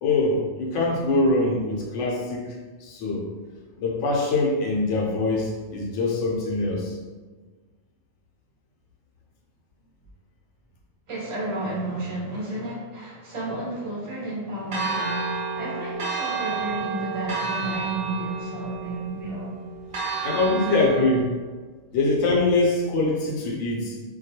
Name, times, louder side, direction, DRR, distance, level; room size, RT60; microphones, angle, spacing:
voice 1, 0.0-2.4 2.8-3.3 3.8-7.0 20.2-21.3 21.9-24.0, left 2 dB, 70° left, -2 dB, 0.8 m, -23 dB
voice 2, 11.1-19.5, right 1 dB, 35° right, -6 dB, 0.5 m, -32 dB
Church bell, 14.7-21.2, right 5 dB, 90° right, 0.4 m, -30 dB
2.3 x 2.3 x 2.7 m, 1.4 s
omnidirectional pair, 1.4 m